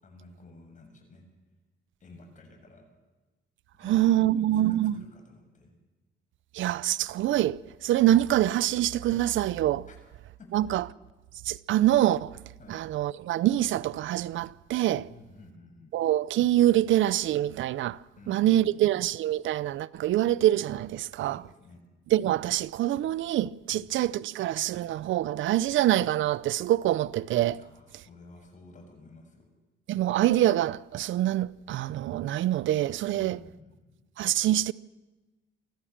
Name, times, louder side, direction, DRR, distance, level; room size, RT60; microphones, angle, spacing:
voice 1, 0.0-1.2 2.0-2.9 3.8-5.7 9.9-10.0 10.4-10.9 12.6-12.8 15.1-16.0 18.2-19.0 21.2-21.8 23.7-23.9 27.6-29.5 33.1-33.8, left 2 dB, 40° left, 7.5 m, -52 dB
voice 2, 3.8-5.0 6.5-9.9 10.5-10.8 11.5-12.3 12.7-15.1 15.9-18.0 18.3-21.4 22.1-27.6 29.9-33.4 34.2-34.7, right 13 dB, 75° right, 0.6 m, -25 dB
24.5 x 15.5 x 7.4 m
cardioid pair, 90°, 20 cm